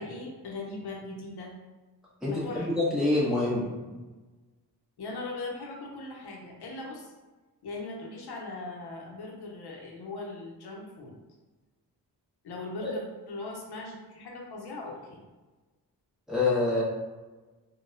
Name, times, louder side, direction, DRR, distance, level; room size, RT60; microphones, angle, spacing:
voice 1, 0.0-1.5 2.2-2.7 5.0-7.1 7.6-11.2 12.4-15.2, left 2 dB, 75° left, -1 dB, 0.8 m, -39 dB
voice 2, 2.2-4.0 12.8-12.9 16.3-16.8, left 2 dB, ahead, -8 dB, 1.4 m, -26 dB
3.9 x 2.4 x 2.5 m, 1.2 s
cardioid pair, 75°, 39 cm